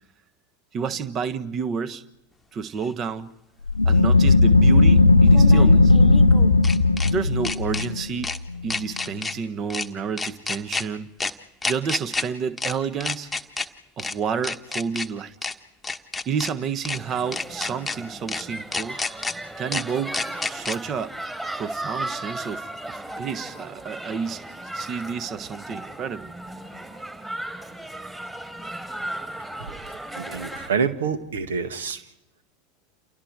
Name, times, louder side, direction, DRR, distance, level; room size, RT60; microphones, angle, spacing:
voice 1, 0.7-2.0 2.5-3.3 3.8-5.9 7.0-8.3 8.6-11.1 11.7-13.3 14.0-15.3 16.2-19.0 19.6-21.1 21.6-24.4 24.7-26.3, right 6 dB, 35° right, 14 dB, 1.3 m, -30 dB
sound 1, 2.8-2.9 5.3-7.1 7.4-7.9 8.2-8.4 8.7-9.3 9.7-9.9 10.2-10.8 11.2-11.3 11.6-12.2 12.6-12.7 13.0-13.7 14.0-14.1 14.4-15.1 15.4-15.5 15.8-16.5 16.8-17.0 17.3-18.0 18.3-18.4 18.7-19.3 19.7-19.8 20.1-20.8, left 3 dB, 5° left, 1.4 m, -29 dB
sound 2, 3.7-9.0, left 3 dB, 85° left, 0.8 m, -16 dB
sound 3, 16.9-30.7, right 1 dB, 15° right, 4.7 m, -36 dB
voice 2, 30.1-32.0, right 6 dB, 70° right, 11 dB, 1.8 m, -27 dB
29.5 x 29.0 x 4.7 m, 0.87 s
figure-of-eight pair, 80°, 0 cm